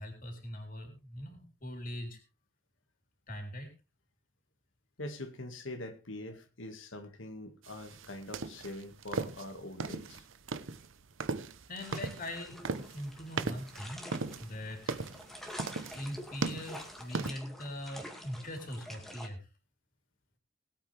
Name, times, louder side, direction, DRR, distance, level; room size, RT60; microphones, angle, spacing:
voice 1, 0.0-2.2 3.3-3.7 11.7-14.1 14.4-14.8 15.9-19.4, left 1 dB, 45° left, 4 dB, 3.8 m, -41 dB
voice 2, 5.0-10.3, left 1 dB, 85° left, 7 dB, 2.0 m, -43 dB
sound 1, 7.6-17.3, right 3 dB, 85° right, 0.9 m, -37 dB
Stick Splashing Water Around, 11.8-19.3, equal, ahead, 2.2 m, -48 dB
20.0 x 8.9 x 3.5 m, 0.31 s
head